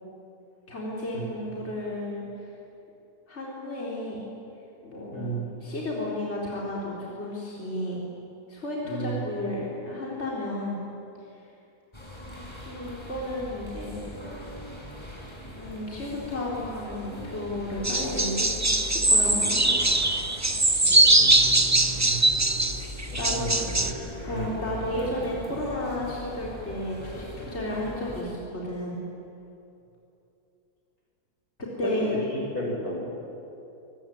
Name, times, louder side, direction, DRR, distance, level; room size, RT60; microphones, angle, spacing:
voice 1, 0.7-2.2 3.3-4.2 4.8-8.0 8.5-10.8 12.5-14.1 15.6-20.0 23.2-23.7 24.3-29.0 31.8-32.2, left 1 dB, 45° left, -4 dB, 4.3 m, -33 dB
voice 2, 5.1-5.4 8.8-9.2 21.1-22.3 23.3-23.8 24.1-24.5 31.8-32.0 32.3-33.0, right 1 dB, 75° left, -2 dB, 7.6 m, -33 dB
sound 1, 11.9-28.2, equal, 15° left, 6.3 m, -40 dB
sound 2, 17.8-23.9, right 2 dB, 15° right, 0.8 m, -21 dB
25.5 x 23.0 x 9.4 m, 2.9 s
omnidirectional pair, 1.6 m